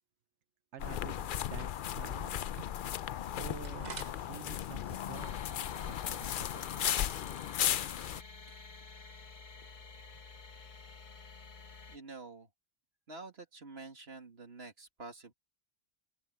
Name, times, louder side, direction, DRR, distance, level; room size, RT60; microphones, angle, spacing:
voice 1, 0.7-2.5 3.4-3.9 4.2-6.7, right 9 dB, 75° right, 1.1 m, -49 dB
sound 1, 0.8-8.2, left 10 dB, 60° left, 0.6 m, -36 dB
sound 2, 2.3-10.2, right 5 dB, 40° right, 1.1 m, -54 dB
sound 3, 5.1-12.0, left 4 dB, 45° left, 1.1 m, -51 dB
voice 2, 11.9-12.5 13.1-15.3, right 3 dB, 60° right, 2.6 m, -48 dB
open air
omnidirectional pair, 1.2 m